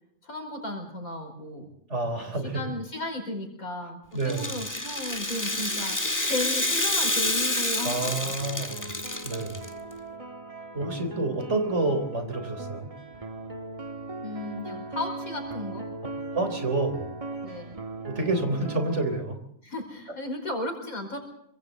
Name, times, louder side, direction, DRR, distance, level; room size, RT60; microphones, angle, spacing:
voice 1, 0.2-1.7 2.2-6.0 6.3-8.3 14.2-15.9 17.4-17.8 19.6-21.2, left 1 dB, 85° left, 4 dB, 5.3 m, -35 dB
voice 2, 1.9-2.7 4.1-4.6 7.8-8.9 9.2-9.6 10.7-12.9 16.3-17.1 18.1-19.4, right 2 dB, 55° right, 7 dB, 4.1 m, -28 dB
Rattle (instrument), 4.2-9.7, left 1 dB, 15° left, 1.7 m, -28 dB
sound 1, 8.4-19.2, right 3 dB, 25° right, 1.4 m, -38 dB
27.0 x 25.0 x 4.1 m, 0.73 s
omnidirectional pair, 1.4 m